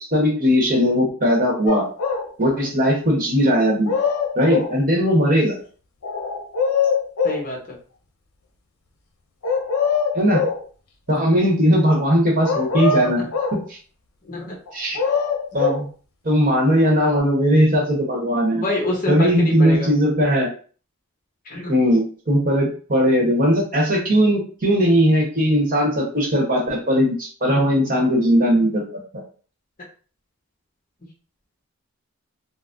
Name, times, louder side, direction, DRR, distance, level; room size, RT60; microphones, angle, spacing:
voice 1, 0.1-1.8 2.4-3.9 4.3-5.5 10.1-10.4 11.1-13.3 13.5-13.8 14.7-15.0 15.5-15.9 16.2-18.6 19.1-20.5 21.7-29.0, equal, 40° right, -1 dB, 0.9 m, -18 dB
sound 1, 1.7-2.3 3.6-4.8 6.0-7.4 9.4-10.6 12.4-13.6 14.7-15.8 17.1-17.2, left 4 dB, 85° left, 0.6 m, -22 dB
voice 2, 7.2-7.6 14.3-14.6 18.5-19.9 21.5-21.7, left 1 dB, 40° left, -2 dB, 0.8 m, -26 dB
3.6 x 2.0 x 2.5 m, 0.40 s
head